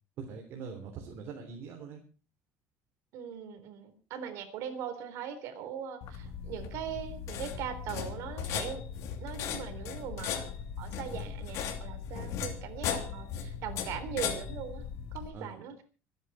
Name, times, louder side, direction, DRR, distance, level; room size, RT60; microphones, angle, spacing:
voice 1, 0.2-2.0 15.3-15.6, right 5 dB, 45° right, 2 dB, 3.5 m, -43 dB
voice 2, 3.1-8.8 9.2-10.4 10.8-14.8 15.1-15.8, right 8 dB, 60° right, 8 dB, 3.8 m, -40 dB
sound 1, 6.0-15.3, left 8 dB, 65° left, 2.9 m, -37 dB
25.5 x 10.0 x 4.4 m, 0.36 s
cardioid pair, 160°, 6 cm